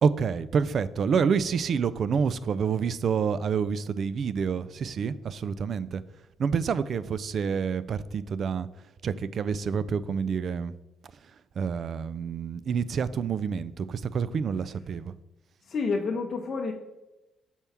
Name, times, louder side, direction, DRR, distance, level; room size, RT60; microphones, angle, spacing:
voice 1, 0.0-6.0 6.4-8.7 9.0-10.7 11.6-15.1, right 6 dB, 55° right, 16 dB, 0.3 m, -28 dB
voice 2, 15.6-16.7, left 4 dB, 50° left, 1 dB, 0.6 m, -29 dB
6.9 x 4.4 x 3.5 m, 0.98 s
cardioid pair, 90°, 0 cm